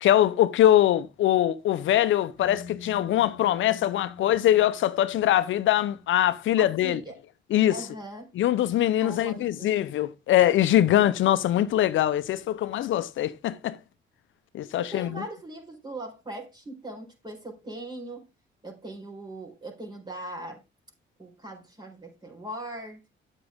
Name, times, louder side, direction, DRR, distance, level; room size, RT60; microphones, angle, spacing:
voice 1, 0.0-7.0 7.5-7.8 8.4-13.8 14.5-15.2, left 12 dB, 75° left, 0.8 m, -22 dB
sound 1, 2.4-6.2, left 5 dB, 85° right, 4.3 m, -46 dB
voice 2, 6.6-7.1 7.7-8.3 9.0-9.8 14.8-18.3 18.6-20.6 21.2-23.0, right 1 dB, 20° right, 4.5 m, -40 dB
9.5 x 7.9 x 3.6 m
cardioid pair, 90°, 20 cm